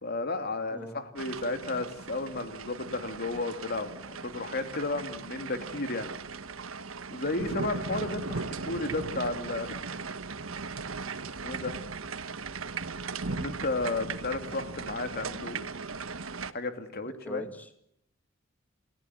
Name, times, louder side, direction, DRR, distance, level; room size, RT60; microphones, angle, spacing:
voice 1, 0.0-6.1 7.1-9.8 11.4-11.8 13.3-15.6 16.5-17.5, left 2 dB, 50° left, 8 dB, 2.8 m, -33 dB
voice 2, 0.7-1.0 17.1-17.7, left 1 dB, 10° left, 7 dB, 1.9 m, -42 dB
sound 1, 1.2-16.5, right 4 dB, 85° right, 1.3 m, -38 dB
29.5 x 17.5 x 9.6 m, 0.76 s
head